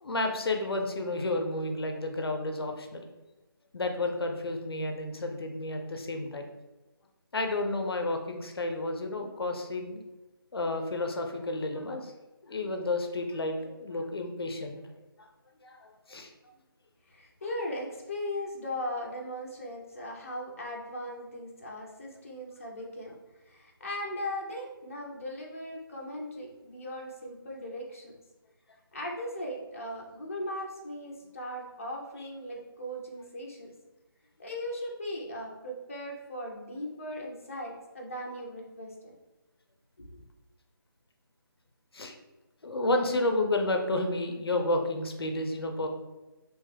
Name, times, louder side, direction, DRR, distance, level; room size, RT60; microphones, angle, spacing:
voice 1, 0.0-3.1 3.7-6.5 7.3-10.0 10.5-12.1 12.4-14.8 15.6-16.3 41.9-42.1 42.6-45.9, left 2 dB, 80° left, 4 dB, 0.5 m, -31 dB
voice 2, 17.1-23.1 23.5-28.1 28.9-33.7 34.4-39.1 40.1-40.2, left 1 dB, 35° left, -1 dB, 0.6 m, -38 dB
2.9 x 2.2 x 3.2 m, 1.1 s
figure-of-eight pair, 175°, 13 cm